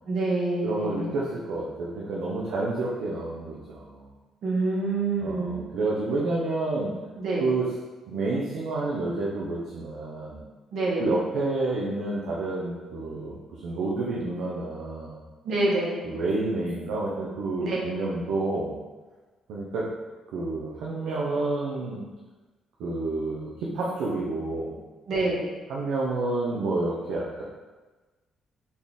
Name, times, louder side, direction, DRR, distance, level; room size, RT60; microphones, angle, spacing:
voice 1, 0.1-1.1 4.4-5.6 7.2-7.4 10.7-11.1 15.4-16.0 17.6-17.8 25.1-25.5, right 2 dB, 70° right, -4 dB, 1.0 m, -26 dB
voice 2, 0.6-4.1 5.2-7.0 7.4-7.7 8.1-10.4 11.0-15.2 16.0-18.7 19.5-19.9 20.3-22.1 22.8-24.7 25.7-27.4, right 2 dB, 85° right, -5 dB, 0.5 m, -29 dB
4.2 x 2.3 x 3.5 m, 1.2 s
cardioid pair, 95°, 0 cm